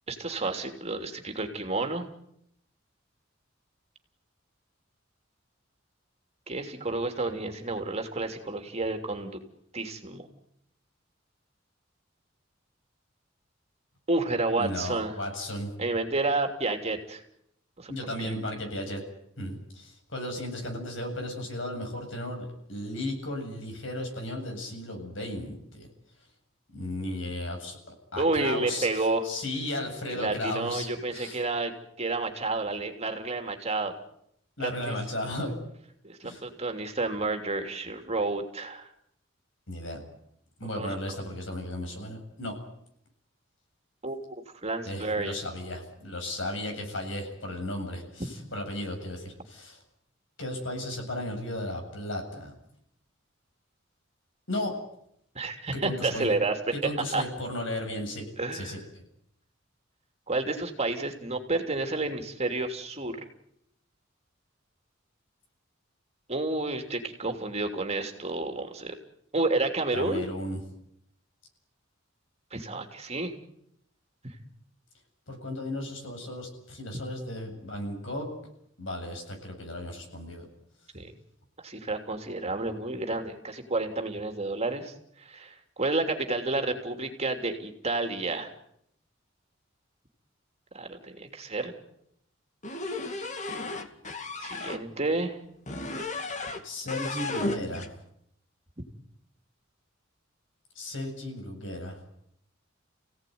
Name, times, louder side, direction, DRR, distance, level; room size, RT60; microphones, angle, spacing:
voice 1, 0.1-2.1 6.5-9.4 9.7-10.3 14.1-15.1 15.8-17.2 17.8-17.9 18.2-18.3 28.2-29.3 30.1-31.7 32.0-33.9 34.6-34.9 36.0-38.9 40.7-41.2 44.0-44.4 44.6-45.3 48.2-48.3 55.3-56.6 57.1-57.2 58.4-58.8 60.3-63.2 66.3-68.9 69.3-70.2 72.5-73.3 80.9-81.1 81.6-88.5 90.7-91.7 94.4-95.4 98.8-98.9, right 2 dB, 35° right, 5 dB, 3.1 m, -30 dB
voice 2, 14.6-15.7 17.9-19.0 19.4-25.9 26.7-27.8 28.1-31.4 34.6-35.5 36.2-36.4 39.7-40.0 40.6-42.6 44.8-49.8 50.4-52.5 54.5-54.7 55.8-56.3 56.8-58.2 58.5-58.8 69.9-70.6 75.3-78.3 78.8-80.4 96.6-97.9 100.8-102.0, left 1 dB, 70° left, 3 dB, 7.6 m, -35 dB
sound 1, 92.6-94.8 95.7-96.6 96.9-97.9, left 2 dB, 40° left, 2.3 m, -34 dB
29.5 x 17.5 x 9.5 m, 0.75 s
head